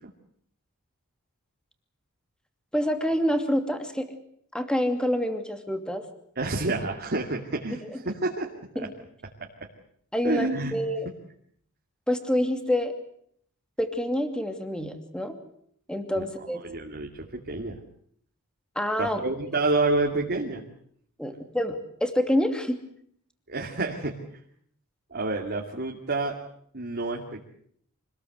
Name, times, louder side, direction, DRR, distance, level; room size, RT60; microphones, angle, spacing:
voice 1, 2.7-4.1 4.5-6.0 8.8-8.9 10.1-11.1 12.1-12.9 13.8-15.4 15.9-16.6 18.8-19.2 21.2-22.7, equal, 5° left, 7 dB, 2.6 m, -27 dB
voice 2, 6.4-8.5 10.2-10.8 16.2-16.3 16.6-17.8 19.0-20.6 23.5-24.1 25.1-26.4 26.7-27.5, right 2 dB, 45° right, 0 dB, 2.5 m, -28 dB
26.0 x 19.5 x 8.0 m, 0.67 s
head